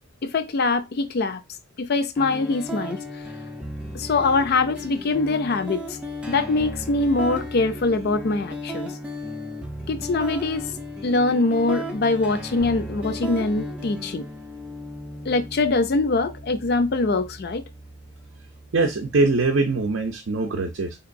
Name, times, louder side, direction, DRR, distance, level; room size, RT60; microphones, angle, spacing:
voice 1, 0.2-1.4 1.8-3.0 3.9-6.0 6.3-8.9 9.9-10.7 11.0-14.3 15.3-17.6, left 3 dB, 50° left, 0.4 m, -23 dB
sound 1, 2.2-20.1, equal, 5° right, 0.4 m, -35 dB
voice 2, 18.7-21.0, right 3 dB, 60° right, 0.5 m, -22 dB
3.8 x 2.9 x 2.6 m
head